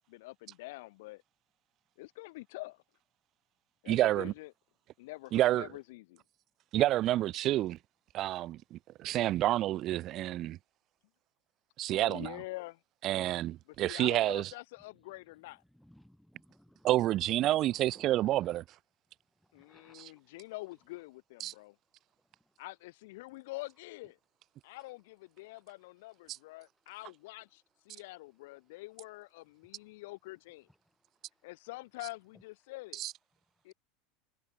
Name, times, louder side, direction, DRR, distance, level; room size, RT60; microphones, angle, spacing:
voice 1, 0.1-1.2 2.0-2.8 3.8-4.5 5.0-6.2 11.9-12.8 13.8-15.6 19.5-21.7 22.6-24.2 24.6-30.7 31.4-33.0 33.6-33.7, left 21 dB, 70° left, 4.6 m, -46 dB
voice 2, 3.9-4.3 5.3-5.7 6.7-7.8 8.1-10.6 11.8-12.4 13.0-14.5 16.8-18.6 19.9-20.1 21.4-21.5 26.3-26.4 32.9-33.1, right 14 dB, 50° right, 0.5 m, -29 dB
voice 3, 15.8-16.9 17.4-17.5 18.0-18.5 19.6-20.0, equal, ahead, 5.6 m, -59 dB
hypercardioid pair, 100°, 0 cm